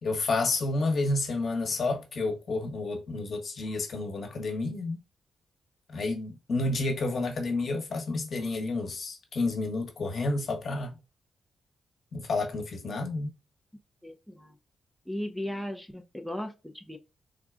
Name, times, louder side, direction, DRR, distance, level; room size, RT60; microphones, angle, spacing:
voice 1, 0.0-5.0 5.9-11.0 12.1-13.3, left 3 dB, 60° left, 1.1 m, -30 dB
voice 2, 14.0-14.5 15.1-17.0, left 1 dB, ahead, 0.5 m, -36 dB
3.8 x 2.3 x 2.3 m
cardioid pair, 75°, 0 cm